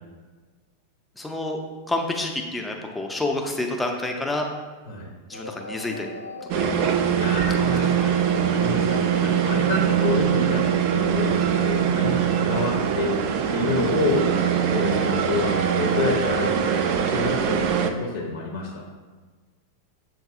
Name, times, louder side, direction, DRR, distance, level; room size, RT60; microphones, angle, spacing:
voice 1, 1.2-1.6 1.9-4.5 5.3-6.1 6.5-7.0 7.6-7.7 9.8-9.9, left 2 dB, 5° left, 2 dB, 0.6 m, -28 dB
sound 1, 5.3-17.0, left 1 dB, 85° left, 0.3 m, -38 dB
sound 2, 6.5-17.9, right 8 dB, 45° right, 0.3 m, -22 dB
voice 2, 7.1-8.2 8.5-13.2 13.5-14.2 14.7-16.6 17.0-18.9, left 3 dB, 60° left, -2 dB, 0.7 m, -28 dB
7.1 x 2.6 x 2.4 m, 1.4 s
figure-of-eight pair, 90°, 0 cm